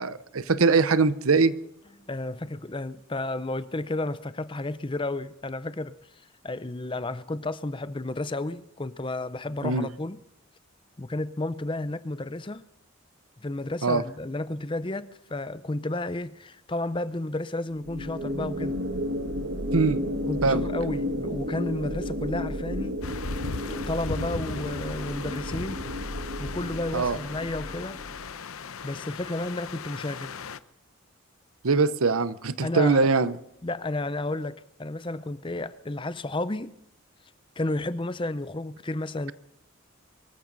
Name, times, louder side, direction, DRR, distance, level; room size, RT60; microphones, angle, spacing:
voice 1, 0.0-1.6 9.6-9.9 13.8-14.0 19.7-20.0 20.4-20.7 26.9-27.2 31.6-33.4, right 4 dB, 90° right, 0.8 m, -22 dB
voice 2, 2.1-6.0 6.4-10.2 11.0-12.6 13.4-18.8 20.3-23.0 23.6-25.9 26.4-28.0 28.8-30.3 32.6-33.1 33.6-36.7 37.6-39.3, left 2 dB, 25° left, 0.6 m, -32 dB
sound 1, 17.8-28.3, equal, 70° right, 1.6 m, -32 dB
sound 2, 23.0-30.6, left 5 dB, 90° left, 0.8 m, -37 dB
24.0 x 15.0 x 4.0 m
head